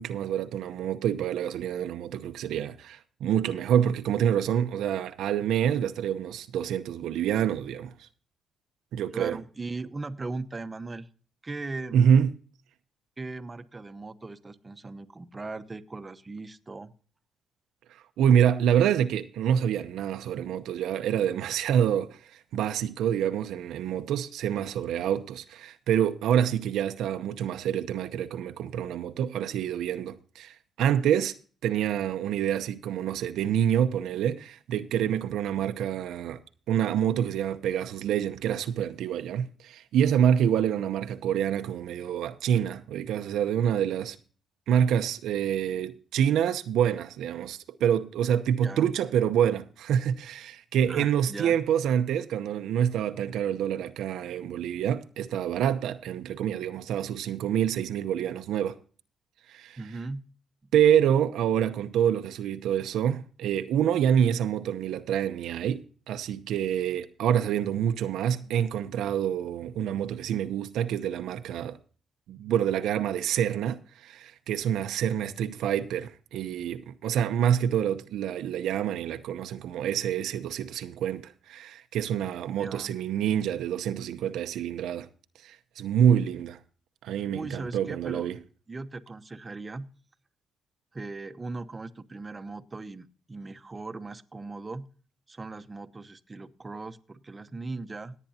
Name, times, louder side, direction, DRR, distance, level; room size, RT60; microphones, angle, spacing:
voice 1, 0.0-8.1 8.9-9.4 11.9-12.3 17.9-31.3 31.6-36.4 36.7-44.2 44.7-58.8 59.5-59.8 60.7-71.8 72.3-85.1 85.4-86.6 87.0-88.4, right 9 dB, 80° right, 0.7 m, -27 dB
voice 2, 9.1-11.1 11.4-12.0 13.2-16.9 48.6-48.9 50.9-51.6 59.8-60.2 82.6-82.9 87.3-88.3 88.7-89.9 90.9-94.9 95.3-98.1, right 3 dB, 25° right, 1.0 m, -38 dB
18.0 x 9.2 x 2.8 m
cardioid pair, 90°, 0 cm